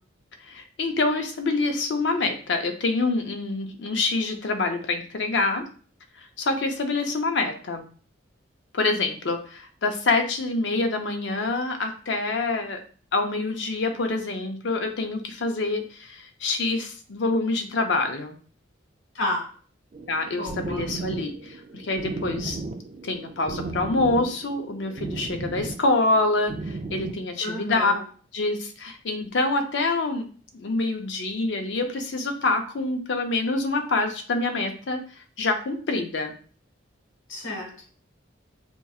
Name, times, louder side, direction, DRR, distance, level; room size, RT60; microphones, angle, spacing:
voice 1, 0.5-5.7 6.4-7.8 8.7-12.8 13.1-18.4 20.1-22.6 23.0-27.9 28.3-30.3 30.5-35.0 35.4-36.3, left 3 dB, 65° left, 5 dB, 0.6 m, -26 dB
voice 2, 19.1-19.5 20.4-20.8 27.4-28.0 37.3-37.8, left 1 dB, 85° left, 0 dB, 1.1 m, -31 dB
sound 1, 19.9-27.1, right 3 dB, 35° right, 0.3 m, -35 dB
4.4 x 2.7 x 2.3 m, 0.42 s
head